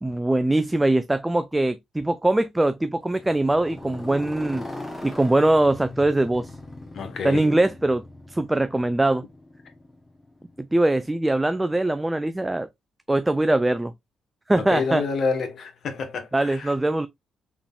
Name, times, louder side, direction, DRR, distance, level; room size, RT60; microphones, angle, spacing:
voice 1, 0.0-4.6 5.0-6.5 7.2-9.2 10.6-12.7 13.1-13.9 14.5-15.0 16.3-17.1, right 2 dB, 10° right, 0.3 m, -22 dB
Motorcycle, 3.0-11.1, left 2 dB, 25° left, 1.1 m, -40 dB
voice 2, 6.9-7.5 14.5-16.7, left 4 dB, 55° left, 1.1 m, -28 dB
3.7 x 3.6 x 2.3 m
cardioid pair, 90°, 0 cm